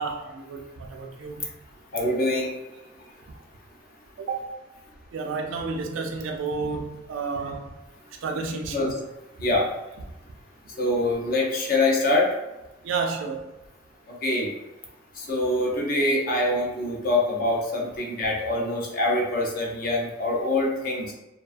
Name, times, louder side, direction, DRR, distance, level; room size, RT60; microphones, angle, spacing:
voice 1, 0.0-1.5 4.2-4.5 5.1-7.7 8.2-8.8 12.8-13.5, right 4 dB, 75° right, 2 dB, 0.3 m, -31 dB
voice 2, 1.9-2.5 8.7-8.9 9.4-9.7 10.8-12.3 14.1-14.5 15.2-21.1, left 2 dB, 45° left, -2 dB, 0.5 m, -24 dB
2.3 x 2.3 x 2.4 m, 1.0 s
head